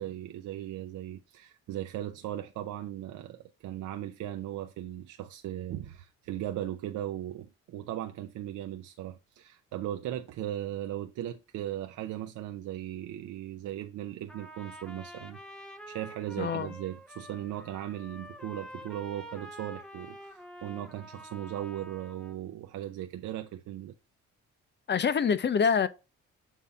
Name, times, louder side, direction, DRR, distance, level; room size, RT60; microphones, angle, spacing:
voice 1, 0.0-15.4 15.9-23.9, right 12 dB, 75° right, 0.6 m, -38 dB
Trumpet, 14.3-22.4, equal, 5° left, 0.9 m, -47 dB
voice 2, 16.4-16.7 24.9-25.9, left 6 dB, 35° left, 0.6 m, -25 dB
7.2 x 2.8 x 5.0 m
cardioid pair, 90°, 30 cm